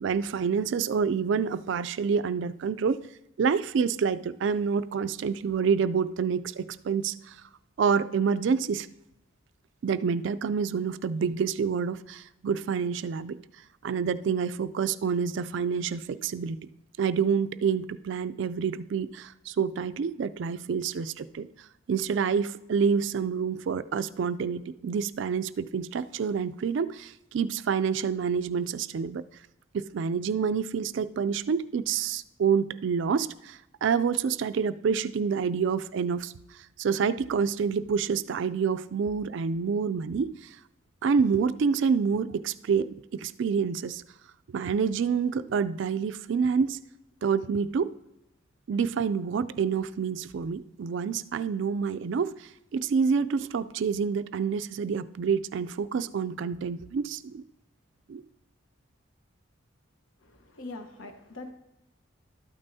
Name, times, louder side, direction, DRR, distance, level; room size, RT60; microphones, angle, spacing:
voice 1, 0.0-3.0 3.4-7.4 7.8-8.9 9.8-13.4 13.8-16.6 17.0-21.5 21.9-29.2 29.7-36.3 36.8-40.5 41.0-44.0 44.5-46.8 47.2-47.9 48.7-57.4 58.1-58.2, right 6 dB, 60° right, 0.3 m, -27 dB
voice 2, 60.2-61.5, left 2 dB, 75° left, 1.1 m, -42 dB
12.5 x 8.9 x 2.7 m
head